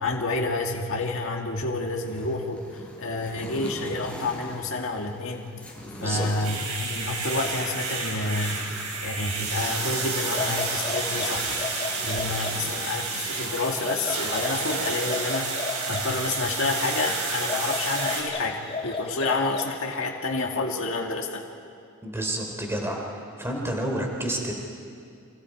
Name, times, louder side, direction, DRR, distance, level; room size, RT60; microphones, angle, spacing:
voice 1, 0.0-5.5 6.0-8.7 9.0-11.7 12.0-21.4, left 2 dB, 65° left, 0 dB, 2.0 m, -29 dB
sound 1, 2.0-14.0, equal, 5° left, 5.2 m, -44 dB
voice 2, 5.9-6.3 9.6-9.7 22.0-24.5, right 1 dB, 10° right, 1 dB, 3.2 m, -30 dB
sound 2, 6.4-18.2, right 4 dB, 85° right, 5.3 m, -30 dB
sound 3, 10.2-12.6 13.7-16.1 17.3-19.9, left 3 dB, 25° left, 2.3 m, -34 dB
29.0 x 26.5 x 4.9 m, 2.4 s
head